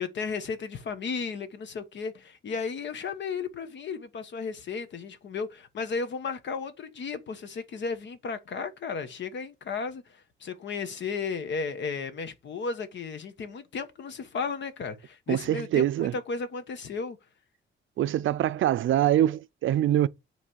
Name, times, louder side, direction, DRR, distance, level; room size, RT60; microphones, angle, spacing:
voice 1, 0.0-17.2, left 5 dB, 60° left, 1.3 m, -34 dB
voice 2, 15.3-16.1 18.0-20.1, right 12 dB, 70° right, 0.5 m, -24 dB
8.4 x 3.3 x 6.3 m
wide cardioid pair, 140°, 21 cm